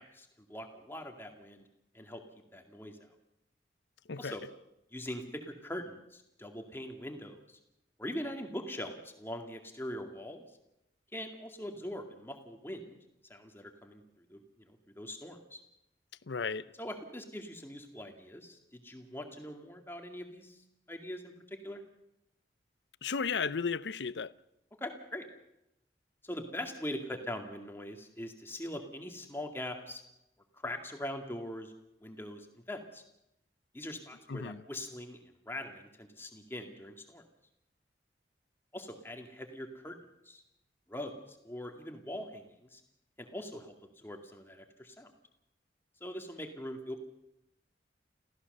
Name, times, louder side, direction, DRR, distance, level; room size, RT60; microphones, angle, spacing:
voice 1, 0.0-1.6 1.9-2.2 2.5-3.0 4.2-4.5 4.9-7.6 8.0-10.4 11.1-13.0 13.3-15.6 16.8-20.6 20.9-21.8 24.8-25.3 26.2-30.0 30.5-31.7 32.0-33.0 33.7-35.2 35.5-37.2 38.7-40.0 40.2-40.4 40.9-42.8 43.2-45.1 46.0-47.0, left 1 dB, 15° left, 2.2 m, -42 dB
voice 2, 16.3-16.7 23.0-24.3 34.3-34.6, left 5 dB, 85° left, 0.7 m, -34 dB
29.0 x 15.0 x 6.7 m
head